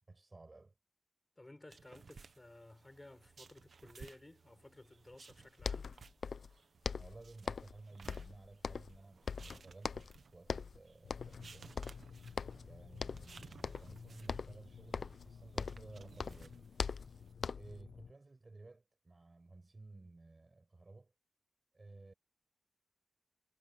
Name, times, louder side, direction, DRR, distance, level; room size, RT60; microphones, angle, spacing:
voice 1, 0.1-0.7 7.0-11.8 12.6-16.7 17.5-21.1 21.7-22.1, right 3 dB, 25° right, 5.6 m, -56 dB
voice 2, 1.4-5.9, left 2 dB, 15° left, 5.6 m, -56 dB
sound 1, 1.7-17.3, right 5 dB, 55° right, 1.0 m, -60 dB
sound 2, 5.3-5.4 5.6-6.5 6.8-7.8 8.1-9.0 9.3-10.2 10.5-10.8 11.1-11.5 11.8-12.7 13.0-13.3 13.6-14.0 14.3-15.9 16.2-17.8, left 5 dB, 60° left, 0.5 m, -41 dB
sound 3, 11.0-18.1, left 6 dB, 85° left, 1.0 m, -54 dB
wide cardioid pair, 175°, 0 cm